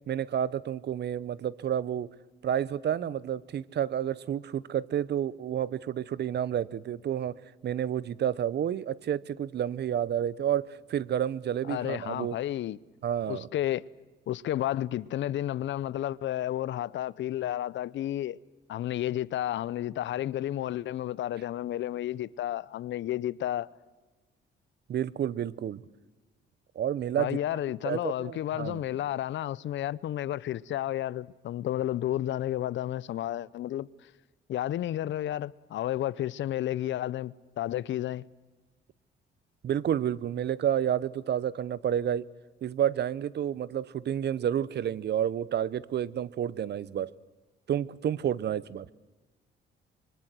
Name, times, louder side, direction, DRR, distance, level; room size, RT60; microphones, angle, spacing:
voice 1, 0.1-2.1 2.4-7.3 7.6-12.3 13.0-13.5 24.9-25.8 26.7-27.4 27.8-28.8 39.6-42.2 42.6-47.1 47.7-48.9, right 10 dB, 60° right, 0.9 m, -30 dB
voice 2, 11.7-12.8 13.3-13.8 14.3-18.4 18.7-23.7 27.2-33.9 34.5-38.2, left 12 dB, 70° left, 0.7 m, -31 dB
25.5 x 23.5 x 7.7 m
cardioid pair, 90°, 20 cm